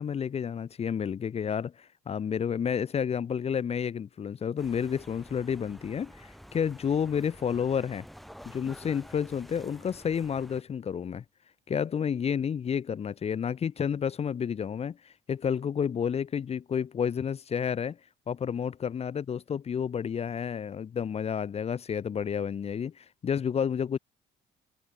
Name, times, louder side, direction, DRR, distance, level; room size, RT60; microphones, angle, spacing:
voice 1, 0.0-8.1 8.4-11.2 11.7-18.0 18.3-24.0, left 7 dB, 35° left, 1.2 m, -30 dB
sound 1, 4.6-10.6, equal, ahead, 1.9 m, -49 dB
cardioid pair, 110°, 17 cm